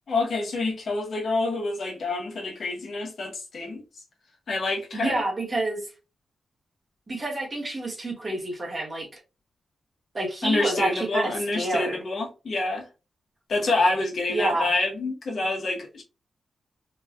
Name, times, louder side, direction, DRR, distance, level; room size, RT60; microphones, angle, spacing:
voice 1, 0.1-3.8 4.5-5.2 10.4-12.8 13.5-16.0, left 2 dB, 65° left, 1.0 m, -27 dB
voice 2, 4.9-5.9 7.1-9.2 10.1-12.0 14.3-14.7, right 2 dB, 30° right, 1.1 m, -28 dB
3.1 x 2.3 x 2.3 m
wide cardioid pair, 110°, 0 cm